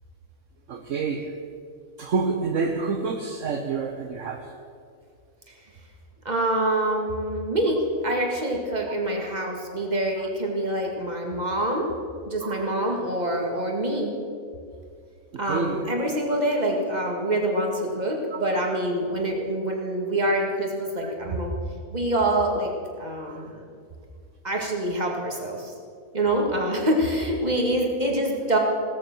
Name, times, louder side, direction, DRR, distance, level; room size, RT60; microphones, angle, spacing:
voice 1, 0.7-1.6 2.0-4.5 10.2-10.3 12.4-12.7 15.3-15.9 18.3-18.4 23.2-23.5, right 4 dB, 60° right, 5 dB, 1.2 m, -29 dB
voice 2, 6.2-11.9 12.3-14.1 15.4-21.5 21.9-22.7 23.0-23.6 24.4-25.7 26.1-28.6, right 1 dB, 30° right, 0 dB, 2.5 m, -25 dB
17.0 x 13.5 x 6.3 m, 2.3 s
omnidirectional pair, 1.5 m